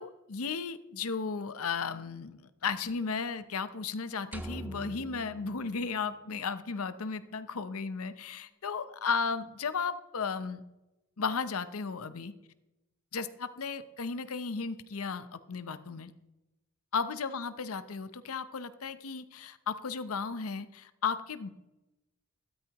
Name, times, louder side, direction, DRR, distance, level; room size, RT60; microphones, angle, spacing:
voice 1, 0.0-10.6 11.2-12.3 13.1-16.1 16.9-21.5, left 5 dB, 90° left, 13 dB, 0.7 m, -35 dB
sound 1, 4.3-6.6, right 1 dB, 10° right, 0.5 m, -44 dB
13.5 x 13.0 x 3.0 m, 0.98 s
head